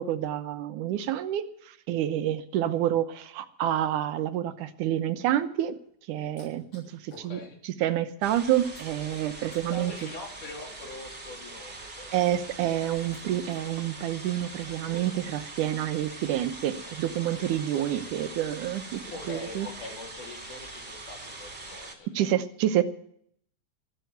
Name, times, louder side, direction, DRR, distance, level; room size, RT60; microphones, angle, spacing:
voice 1, 0.0-5.7 6.1-9.9 12.1-19.7 22.1-22.8, right 12 dB, 85° right, 10 dB, 2.5 m, -28 dB
sound 1, 5.5-7.3 7.7-7.9 8.1-13.7 14.0-15.0, left 1 dB, 50° left, 9.2 m, -57 dB
voice 2, 7.1-7.6 9.7-12.1 19.1-22.3, left 3 dB, 85° left, 1 dB, 4.7 m, -43 dB
sound 2, 8.2-21.9, right 2 dB, 20° right, 2.1 m, -43 dB
18.5 x 7.0 x 9.3 m, 0.65 s
omnidirectional pair, 3.5 m